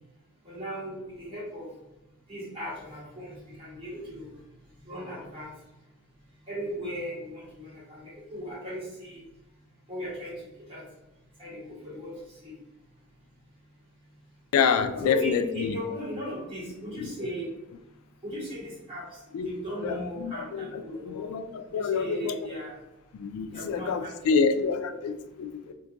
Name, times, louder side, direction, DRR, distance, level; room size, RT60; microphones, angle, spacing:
voice 1, 0.4-1.7 2.3-4.3 4.8-5.5 6.5-9.2 9.9-10.3 10.7-10.8 11.4-12.5 15.0-17.5 18.2-21.3 21.7-22.7 23.5-24.1, equal, 25° right, -8 dB, 1.5 m, -37 dB
voice 2, 14.5-15.8 17.0-17.1 19.3-19.5 19.8-22.4 23.1-25.7, left 5 dB, 85° left, 14 dB, 0.3 m, -27 dB
2.5 x 2.5 x 3.7 m, 0.96 s
head